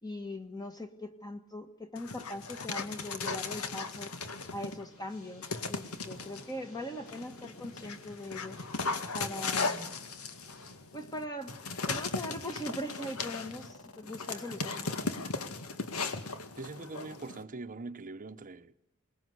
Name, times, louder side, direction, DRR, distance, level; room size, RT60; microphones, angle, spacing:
voice 1, 0.0-4.1 4.5-8.6 9.1-10.0 10.9-11.5 11.9-14.9, left 1 dB, 20° left, 1.6 m, -41 dB
Dog, 2.0-4.9 5.4-6.4 7.1-17.4, left 4 dB, 85° left, 2.1 m, -37 dB
sound 1, 4.9-10.8, left 1 dB, 70° left, 6.9 m, -54 dB
voice 2, 16.6-18.7, right 3 dB, 40° right, 0.9 m, -42 dB
27.5 x 20.0 x 8.0 m
head